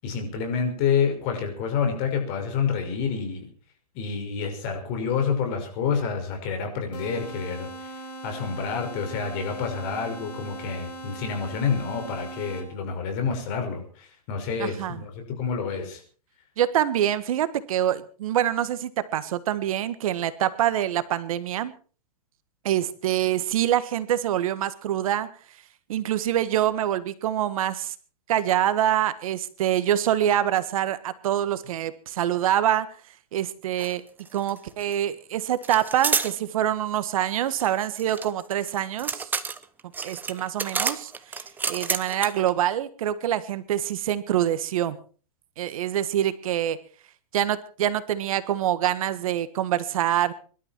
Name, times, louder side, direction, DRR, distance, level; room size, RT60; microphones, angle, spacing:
voice 1, 0.0-3.5 3.9-7.9 8.2-16.0, left 6 dB, 40° left, 4 dB, 6.0 m, -28 dB
sound 1, 6.9-12.9, right 2 dB, 85° left, 5.1 m, -40 dB
voice 2, 14.6-15.0 16.6-21.7 22.6-25.3 25.9-27.9 28.3-32.9 33.3-34.0 34.3-39.3 40.0-45.0 45.6-46.8 47.3-50.3, right 11 dB, 60° right, 13 dB, 1.5 m, -25 dB
sound 2, 33.8-33.9 34.2-35.0 35.6-36.3 37.6-42.5, right 5 dB, 10° right, 0.9 m, -29 dB
24.5 x 12.5 x 4.6 m, 0.40 s
hypercardioid pair, 145°, 20 cm